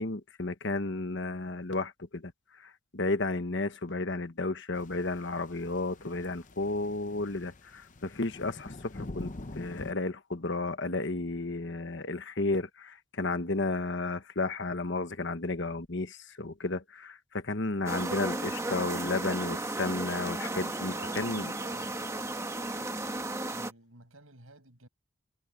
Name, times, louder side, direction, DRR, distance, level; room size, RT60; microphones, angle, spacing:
voice 1, 0.0-2.3 2.6-21.5, left 2 dB, 55° left, 1.3 m, -33 dB
sound 1, 4.8-9.9, left 2 dB, 35° left, 0.8 m, -45 dB
sound 2, 17.9-23.7, right 2 dB, 15° right, 1.4 m, -34 dB
voice 2, 20.6-22.3 23.4-24.9, right 2 dB, 75° right, 6.7 m, -53 dB
head